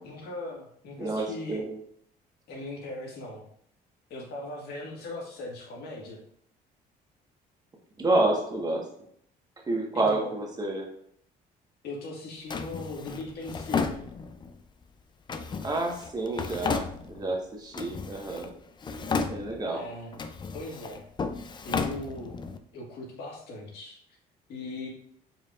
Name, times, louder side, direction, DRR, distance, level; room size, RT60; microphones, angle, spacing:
voice 1, 0.0-1.6 2.5-3.4 4.1-6.2 9.9-10.3 11.8-14.0 19.7-20.1 20.5-21.1 21.6-22.4 22.7-24.0 24.5-24.9, left 2 dB, 70° left, -1 dB, 1.7 m, -39 dB
voice 2, 1.0-1.8 8.0-8.8 9.7-10.9 15.6-18.5 19.3-19.8, right 2 dB, 25° right, 0 dB, 1.2 m, -29 dB
Drawer open or close, 12.5-14.6 15.3-17.4 17.7-18.5 18.8-19.8 20.1-22.6, left 5 dB, 25° left, 0.4 m, -33 dB
4.8 x 4.5 x 2.4 m, 0.67 s
cardioid pair, 110°, 17 cm